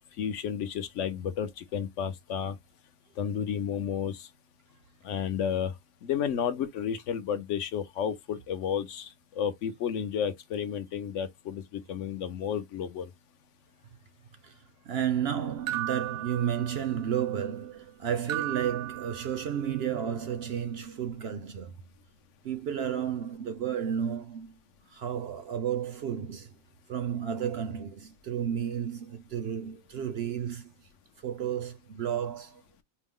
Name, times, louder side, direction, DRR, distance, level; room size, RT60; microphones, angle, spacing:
voice 1, 0.2-2.6 3.2-4.3 5.0-5.7 6.0-13.1, left 8 dB, 65° left, 0.9 m, -32 dB
voice 2, 14.4-21.7 22.4-24.6 24.9-26.6 26.9-30.7 31.2-32.6, right 9 dB, 60° right, 0.6 m, -32 dB
sound 1, 15.7-17.1 18.3-19.7, right 14 dB, 80° right, 1.0 m, -36 dB
4.6 x 2.1 x 3.5 m
omnidirectional pair, 1.5 m